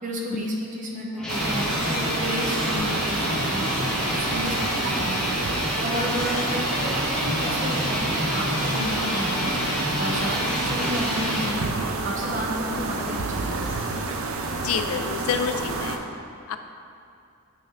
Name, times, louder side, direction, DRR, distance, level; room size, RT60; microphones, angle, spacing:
voice 1, 0.0-3.8 4.0-5.3 5.8-9.6 10.0-11.7 12.0-13.7, equal, 35° right, -1 dB, 0.8 m, -32 dB
sound 1, 1.1-11.5, left 1 dB, 5° left, 1.3 m, -28 dB
sound 2, 1.2-15.7, left 1 dB, 20° left, 1.0 m, -46 dB
sound 3, 1.3-16.0, right 3 dB, 80° right, 0.5 m, -29 dB
voice 2, 14.6-16.0 16.5-16.6, left 7 dB, 90° left, 8 dB, 0.4 m, -28 dB
8.6 x 5.5 x 2.5 m, 2.6 s
head